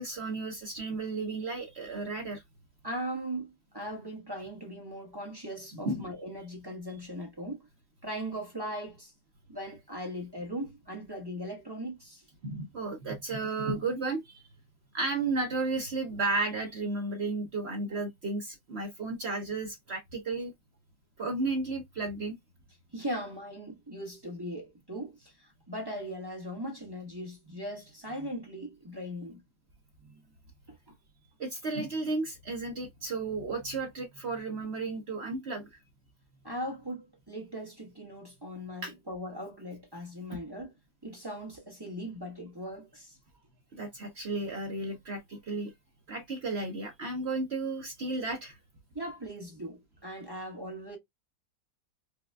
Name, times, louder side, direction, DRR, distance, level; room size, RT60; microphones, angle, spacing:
voice 1, 0.0-2.4 5.7-6.0 12.4-14.4 14.9-20.5 21.2-22.4 31.4-35.7 38.8-38.9 43.7-45.7 46.1-48.6, right 3 dB, 55° right, 0.7 m, -33 dB
voice 2, 2.8-7.6 8.0-9.1 9.5-12.2 22.9-29.4 30.9-31.0 36.4-40.7 41.0-43.2 48.9-51.0, equal, 15° right, 1.0 m, -39 dB
4.8 x 2.3 x 2.2 m
omnidirectional pair, 2.0 m